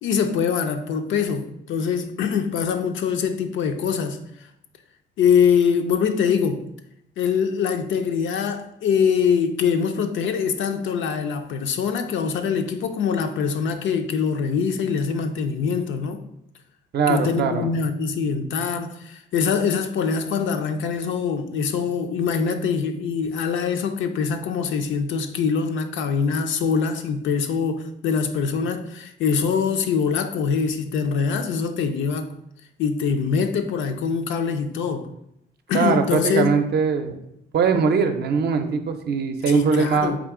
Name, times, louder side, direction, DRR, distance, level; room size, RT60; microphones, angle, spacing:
voice 1, 0.0-4.2 5.2-6.7 7.2-16.2 17.1-32.3 32.8-35.1 35.7-36.5 39.5-40.2, left 6 dB, 75° left, 0.5 m, -23 dB
voice 2, 16.9-17.7 35.7-37.2 37.5-40.1, right 5 dB, 55° right, 0.5 m, -21 dB
3.7 x 2.9 x 3.6 m
cardioid pair, 90°, 20 cm